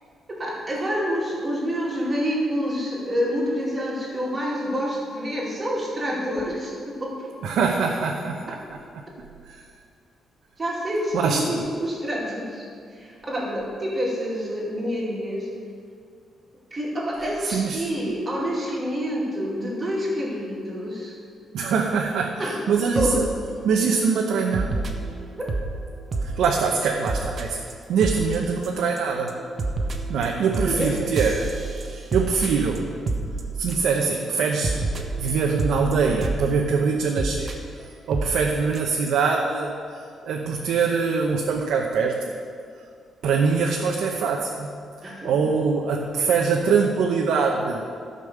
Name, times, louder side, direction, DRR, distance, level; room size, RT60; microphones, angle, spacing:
voice 1, 0.3-7.3 10.6-12.7 12.9-15.5 16.7-21.1 22.4-22.6 23.0-23.2 25.4-25.5 30.6-30.9 45.0-45.3, equal, 20° right, -5 dB, 2.5 m, -27 dB
voice 2, 7.4-8.8 9.4-9.6 11.1-11.6 17.5-17.9 21.5-23.2 23.6-24.9 26.2-27.6 27.9-29.4 30.1-31.5 31.8-32.9 33.5-37.6 38.1-42.3 43.2-44.7 45.0-47.8, right 5 dB, 85° right, 0 dB, 0.8 m, -23 dB
sound 1, 23.0-23.2 23.6-23.8 24.5-25.7 26.1-26.5 26.8-26.9 27.1-27.4 27.7-27.8 28.0-28.4 28.6-29.0 29.3-34.0 34.3-34.4 34.6-36.5 37.2-37.5 38.1-38.4 38.7-38.8 39.1-39.2, right 3 dB, 35° right, 0.9 m, -28 dB
13.0 x 5.4 x 6.7 m, 2.3 s
cardioid pair, 155°, 0 cm